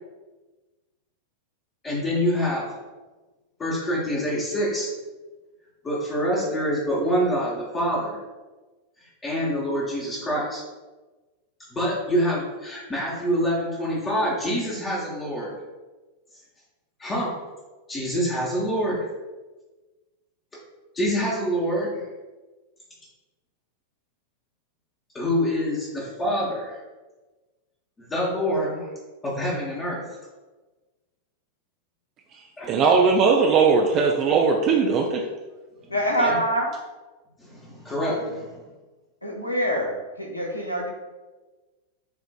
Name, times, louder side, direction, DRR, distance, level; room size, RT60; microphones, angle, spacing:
voice 1, 1.8-2.7 3.6-4.9 5.8-8.2 9.0-10.6 11.7-15.5 17.0-17.4 17.9-19.1 20.9-22.0 25.1-26.8 28.0-28.9 29.2-30.0 32.6-32.9 36.2-36.4 37.4-38.6, equal, 20° left, -6 dB, 0.9 m, -26 dB
voice 2, 32.7-35.2, right 5 dB, 35° right, 1 dB, 0.4 m, -19 dB
voice 3, 35.9-36.7 39.2-40.9, equal, 85° left, 1 dB, 0.7 m, -25 dB
6.9 x 2.5 x 2.3 m, 1.2 s
figure-of-eight pair, 90°, 0 cm